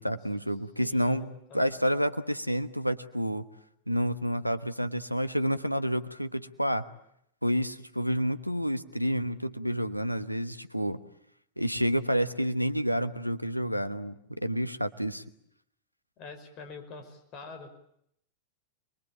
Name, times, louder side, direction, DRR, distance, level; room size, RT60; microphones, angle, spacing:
voice 1, 0.0-3.4 3.9-6.9 7.4-11.0 11.6-15.2, equal, 90° right, 12 dB, 1.2 m, -29 dB
voice 2, 0.8-1.8 16.2-17.7, left 4 dB, 40° left, 7 dB, 5.4 m, -46 dB
27.5 x 22.5 x 8.7 m, 0.73 s
figure-of-eight pair, 90°, 0 cm